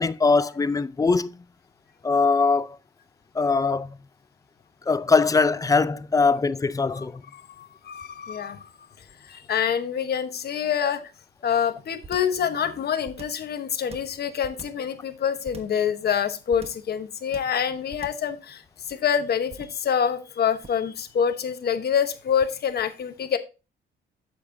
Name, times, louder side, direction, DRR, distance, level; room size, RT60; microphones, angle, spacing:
voice 1, 0.0-1.4 2.0-2.8 3.4-4.0 4.9-7.2, left 4 dB, 15° left, 0.4 m, -21 dB
voice 2, 7.3-8.7 9.3-11.0 11.4-18.6 18.9-23.4, left 8 dB, 55° left, 1.0 m, -26 dB
sound 1, 12.0-12.4 13.0-13.5 13.9-14.9 15.4-15.8 16.5-16.9 17.3-17.6 17.9-18.3 19.5-19.9 20.6-20.9, right 4 dB, 30° right, 1.2 m, -43 dB
8.4 x 6.9 x 2.6 m
cardioid pair, 90°, 20 cm